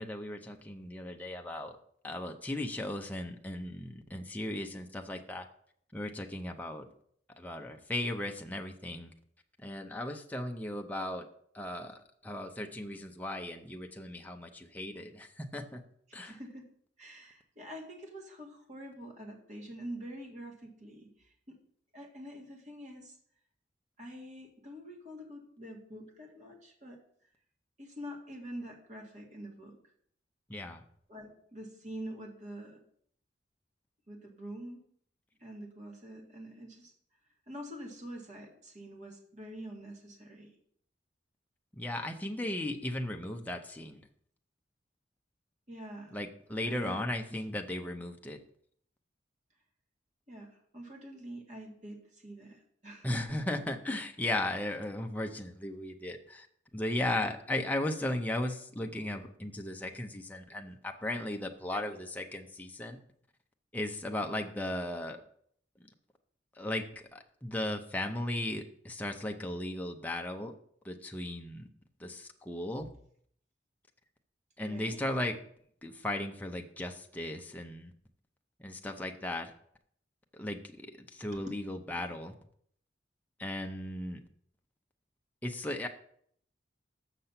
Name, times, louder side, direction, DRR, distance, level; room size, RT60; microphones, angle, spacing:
voice 1, 0.0-1.8 2.0-5.5 5.9-6.9 7.3-9.1 9.6-11.3 11.5-15.8 16.1-16.4 30.5-30.8 41.7-44.0 46.1-48.4 53.0-56.5 56.7-63.0 63.7-65.2 66.5-70.5 70.8-71.7 72.0-72.9 74.6-75.4 75.8-77.9 78.6-79.5 80.3-82.3 83.4-84.2 85.4-85.9, left 1 dB, 10° left, 3 dB, 0.6 m, -36 dB
voice 2, 16.1-16.7 17.0-21.6 21.9-23.2 24.0-27.0 27.8-29.8 31.1-32.8 34.1-34.8 35.4-36.9 37.5-40.5 45.7-46.2 46.6-47.0 50.3-53.4 61.7-62.0 72.8-72.9 74.6-75.0 81.3-81.4, right 1 dB, 40° right, 1 dB, 1.9 m, -46 dB
6.8 x 6.6 x 5.8 m, 0.64 s
head